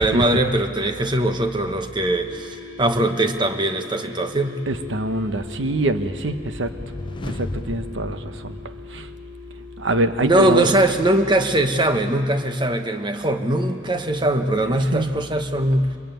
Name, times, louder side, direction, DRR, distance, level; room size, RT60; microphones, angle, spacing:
voice 1, 0.0-4.6 10.2-15.9, right 1 dB, 25° right, 6 dB, 1.2 m, -21 dB
sound 1, 2.2-12.5, left 7 dB, 40° right, 5.6 m, -42 dB
voice 2, 4.7-6.7 7.2-9.1 9.8-10.7 14.6-15.1, right 2 dB, 75° right, 9 dB, 1.1 m, -25 dB
sound 2, 6.0-9.3, left 1 dB, 25° left, 0.7 m, -35 dB
24.5 x 21.5 x 9.3 m, 2.4 s
head